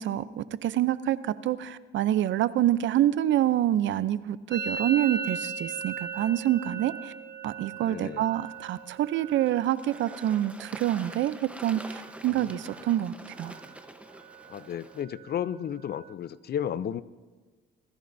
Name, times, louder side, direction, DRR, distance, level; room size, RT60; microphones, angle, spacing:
voice 1, 0.0-7.1 7.4-13.1 13.4-13.6, right 12 dB, 70° right, 16 dB, 0.6 m, -27 dB
Musical instrument, 4.5-12.2 12.4-13.0 13.2-13.8 14.1-16.1, right 5 dB, 55° right, 1.3 m, -40 dB
voice 2, 7.8-8.3 12.3-12.4 14.5-17.0, left 9 dB, 55° left, 16 dB, 0.5 m, -33 dB
Bird / Water, 8.3-15.0, right 1 dB, 5° right, 0.9 m, -47 dB
21.0 x 14.5 x 2.7 m, 1.3 s
cardioid pair, 90°, 20 cm